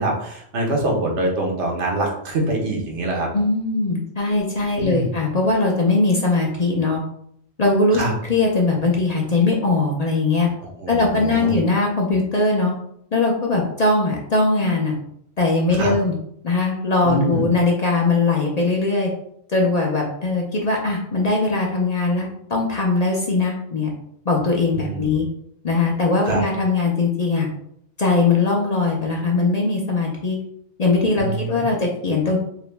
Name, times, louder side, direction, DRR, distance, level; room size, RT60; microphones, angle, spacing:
voice 1, 0.0-3.3 4.8-5.1 7.9-8.1 10.8-11.6 15.7-15.9 17.0-17.5 24.7-25.2 26.2-26.4 31.2-31.7, right 2 dB, 80° right, 0 dB, 1.2 m, -24 dB
voice 2, 3.3-7.0 7.6-8.0 8.3-10.5 10.9-12.7 13.1-14.9 15.4-16.2 16.4-19.1 19.5-23.9 24.3-25.2 25.6-27.5 28.0-30.4 30.8-32.4, left 3 dB, 45° left, -1 dB, 0.6 m, -20 dB
4.8 x 2.2 x 3.3 m, 0.70 s
omnidirectional pair, 1.2 m